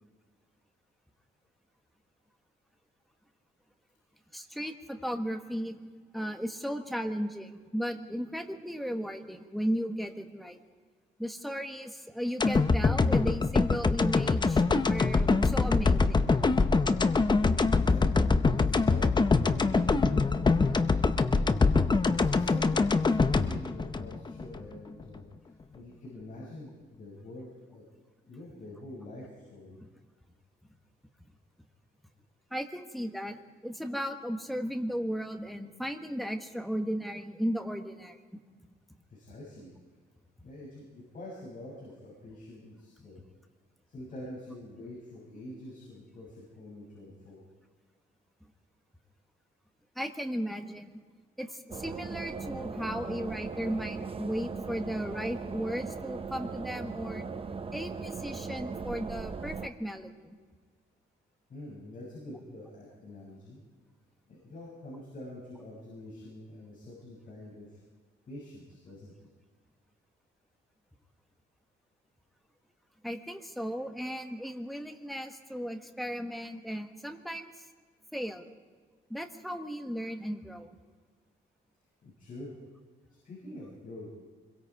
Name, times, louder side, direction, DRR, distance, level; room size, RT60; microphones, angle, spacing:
voice 1, 4.3-5.8 6.1-10.6 11.2-16.2 32.5-38.2 49.9-51.0 51.4-57.3 57.7-60.3 73.0-77.5 78.1-78.5 79.1-80.7, equal, ahead, 5 dB, 1.3 m, -35 dB
sound 1, 12.4-24.6 25.0-25.1, left 4 dB, 20° left, 0.7 m, -24 dB
voice 2, 17.7-20.4 22.0-25.2 25.7-27.8 28.2-29.8 39.1-39.7 40.4-43.2 43.9-47.4 61.5-63.6 64.3-67.8 68.3-69.1 82.0-82.6 83.2-84.2, left 1 dB, 45° left, -6 dB, 7.0 m, -46 dB
sound 2, 51.7-59.7, right 5 dB, 30° right, 0.8 m, -38 dB
25.5 x 22.0 x 4.8 m, 1.5 s
wide cardioid pair, 165°, 20 cm